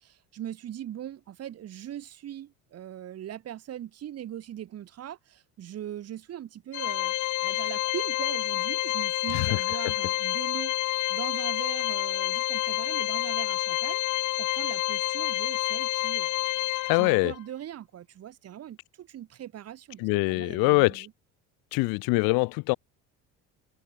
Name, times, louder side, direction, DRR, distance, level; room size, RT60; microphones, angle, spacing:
voice 1, 0.0-7.1 7.4-10.7 11.1-21.1, right 11 dB, 45° right, 4.2 m, -40 dB
Organ, 6.7-17.4, left 17 dB, 60° left, 1.5 m, -29 dB
voice 2, 16.9-17.3 20.0-21.1 21.7-22.8, left 28 dB, 80° left, 1.8 m, -24 dB
cardioid pair, 125°, 34 cm